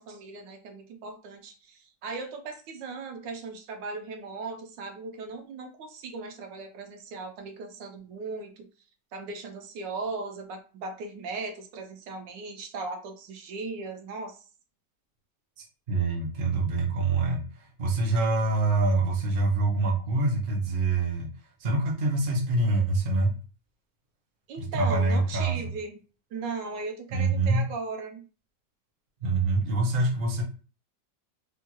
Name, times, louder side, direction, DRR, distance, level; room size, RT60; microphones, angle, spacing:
voice 1, 0.0-8.7 9.1-14.5 24.5-26.0 26.3-28.2, right 3 dB, 80° right, 4 dB, 1.3 m, -38 dB
voice 2, 15.9-21.3 21.6-23.4 24.6-25.7 27.1-27.6 29.2-30.4, right 3 dB, 45° right, 1 dB, 0.7 m, -25 dB
3.5 x 2.2 x 2.9 m, 0.36 s
omnidirectional pair, 1.9 m